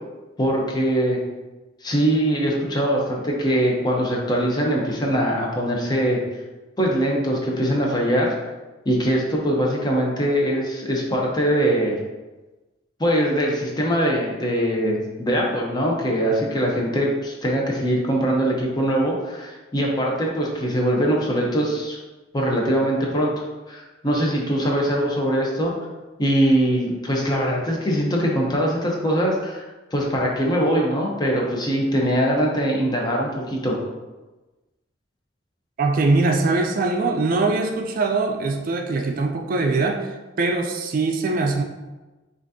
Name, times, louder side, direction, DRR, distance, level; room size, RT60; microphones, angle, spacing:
voice 1, 0.4-1.2 1.8-6.2 6.8-8.3 8.8-12.0 13.0-22.0 22.3-25.7 26.2-29.7 29.9-33.8, equal, 25° left, -2 dB, 0.7 m, -22 dB
voice 2, 35.8-41.6, right 3 dB, 50° right, 4 dB, 0.4 m, -22 dB
5.8 x 2.5 x 2.7 m, 1.2 s
head